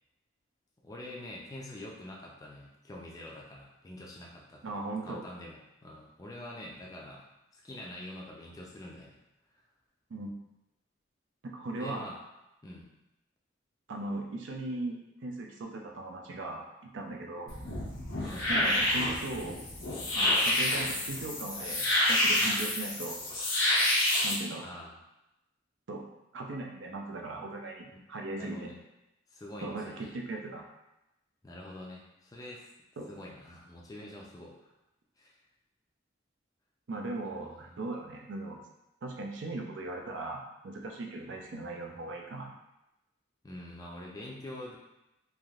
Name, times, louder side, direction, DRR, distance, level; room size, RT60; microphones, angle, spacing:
voice 1, 0.8-7.3 7.5-9.2 11.8-12.2 12.6-12.9 18.2-18.5 24.6-25.0 28.3-28.8 29.3-30.1 31.4-32.6 33.1-34.7 35.2-35.4 37.4-37.9 43.4-44.8, left 1 dB, 20° left, -3 dB, 0.4 m, -45 dB
voice 2, 4.6-5.3 10.1-10.3 11.4-12.1 13.9-17.5 18.5-19.6 20.1-23.2 24.2-24.7 25.9-26.0 26.3-28.7 29.6-30.6 33.0-33.1 36.9-38.6 39.0-42.5, right 2 dB, 70° right, 1 dB, 0.5 m, -38 dB
sound 1, 17.5-24.3, left 1 dB, 90° left, 0.8 m, -28 dB
3.3 x 2.6 x 2.4 m, 0.92 s
head